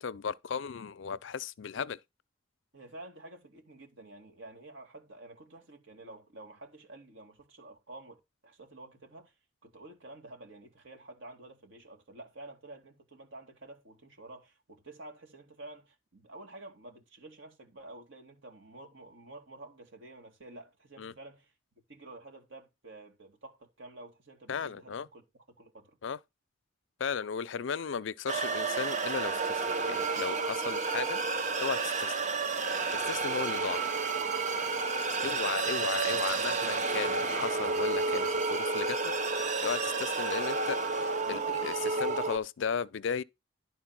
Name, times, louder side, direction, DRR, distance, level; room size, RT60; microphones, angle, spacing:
voice 1, 0.0-2.0 21.0-21.1 24.5-25.1 26.0-26.2 27.0-31.2 31.6-32.3 32.9-33.8 35.2-43.2, left 6 dB, 70° left, 0.5 m, -36 dB
voice 2, 2.7-9.3 9.6-21.5 21.9-25.2 25.6-26.0 35.8-36.2, right 2 dB, 75° right, 2.6 m, -50 dB
sound 1, 28.3-42.4, right 4 dB, 35° right, 0.9 m, -31 dB
11.0 x 4.4 x 5.9 m
head